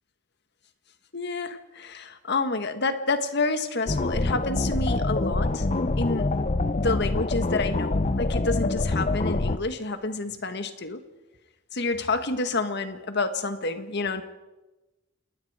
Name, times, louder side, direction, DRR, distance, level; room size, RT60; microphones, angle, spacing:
voice 1, 1.1-5.6 6.0-6.3 6.7-11.0 11.7-14.2, left 3 dB, 60° left, 9 dB, 1.7 m, -29 dB
sound 1, 3.9-9.6, left 2 dB, 35° left, 0.7 m, -25 dB
28.5 x 20.0 x 5.0 m, 1.1 s
head